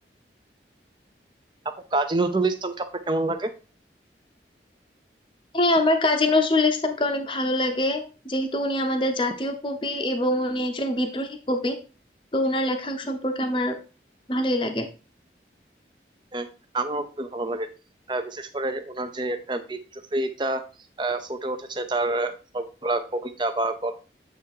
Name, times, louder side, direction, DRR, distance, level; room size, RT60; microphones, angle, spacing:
voice 1, 1.6-3.5 16.3-16.5 16.7-17.7 18.1-20.6 21.0-23.9, right 2 dB, 25° right, 8 dB, 0.6 m, -27 dB
voice 2, 5.5-11.8 12.3-13.8 14.3-14.9, left 1 dB, 30° left, 4 dB, 0.8 m, -24 dB
8.2 x 3.4 x 4.7 m, 0.34 s
head